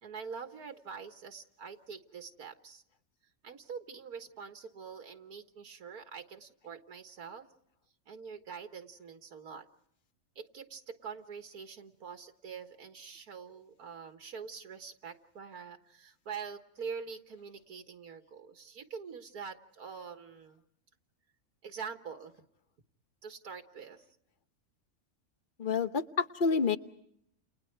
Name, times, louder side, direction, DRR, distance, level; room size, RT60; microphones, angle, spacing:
voice 1, 0.0-2.8 3.4-7.5 8.1-9.7 10.4-20.6 21.6-22.3 23.2-24.1, right 6 dB, 85° right, 7 dB, 2.0 m, -45 dB
voice 2, 25.6-26.8, left 5 dB, 35° left, 11 dB, 1.2 m, -28 dB
30.0 x 30.0 x 4.6 m, 0.68 s
omnidirectional pair, 1.6 m